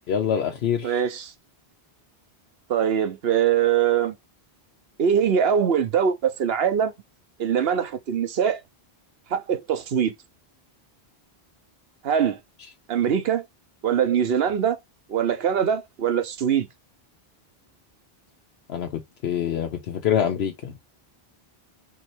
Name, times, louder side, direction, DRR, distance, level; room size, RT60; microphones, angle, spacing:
voice 1, 0.1-0.9 18.7-20.8, left 8 dB, 80° left, 1.0 m, -25 dB
voice 2, 0.8-1.3 2.7-4.2 5.0-6.9 7.4-8.6 9.3-10.1 12.0-12.4 12.9-13.5 13.8-14.8 15.1-16.7, right 8 dB, 70° right, 1.0 m, -22 dB
3.8 x 3.0 x 4.5 m
omnidirectional pair, 1.1 m